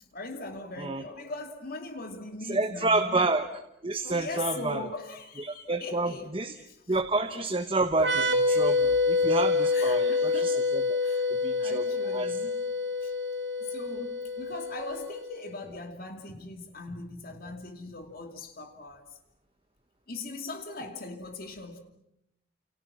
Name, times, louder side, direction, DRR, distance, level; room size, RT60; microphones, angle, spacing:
voice 1, 0.1-3.2 3.9-7.0 9.2-9.3 9.7-10.7 11.0-11.3 11.6-12.6 13.0-13.1 13.6-19.2 20.1-21.8, left 3 dB, 45° left, 2.6 m, -40 dB
voice 2, 2.5-3.5 3.8-4.8 5.4-6.6 6.9-12.4, right 2 dB, 25° right, 1.2 m, -29 dB
sound 1, 8.0-15.5, left 3 dB, 65° right, 3.2 m, -27 dB
29.5 x 28.0 x 6.1 m
head